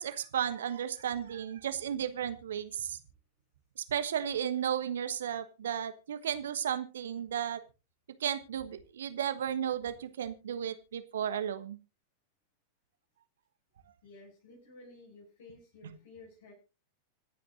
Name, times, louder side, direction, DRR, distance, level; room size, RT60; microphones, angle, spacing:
voice 1, 0.0-3.0 3.9-7.6 8.2-11.8, right 9 dB, 65° right, 11 dB, 1.3 m, -34 dB
voice 2, 14.0-16.5, left 3 dB, 60° left, -1 dB, 6.9 m, -53 dB
25.5 x 9.2 x 2.6 m, 0.30 s
figure-of-eight pair, 90°, 0 cm